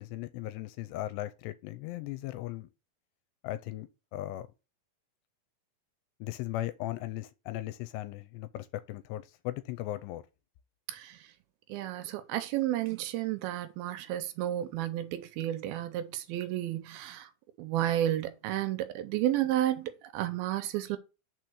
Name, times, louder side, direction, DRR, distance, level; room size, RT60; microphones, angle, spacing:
voice 1, 0.0-2.7 3.4-4.5 6.2-10.2, left 15 dB, 85° left, 2.6 m, -37 dB
voice 2, 10.9-11.3 11.7-17.3 17.6-21.0, right 13 dB, 80° right, 2.2 m, -32 dB
5.6 x 4.5 x 6.4 m
omnidirectional pair, 5.0 m